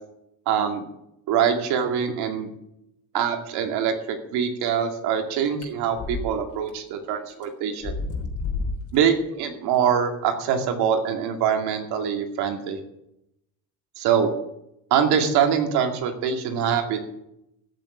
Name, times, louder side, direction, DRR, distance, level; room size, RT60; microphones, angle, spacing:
voice 1, 0.5-0.8 1.3-2.5 3.1-8.0 8.9-12.8 14.0-14.3 14.9-17.0, right 8 dB, 90° right, 4 dB, 2.4 m, -24 dB
sound 1, 5.6-6.2 6.7-6.8 7.4-7.5 7.8-9.0, left 3 dB, 50° left, 3.6 m, -29 dB
14.5 x 6.8 x 9.7 m, 0.83 s
cardioid pair, 110°, 38 cm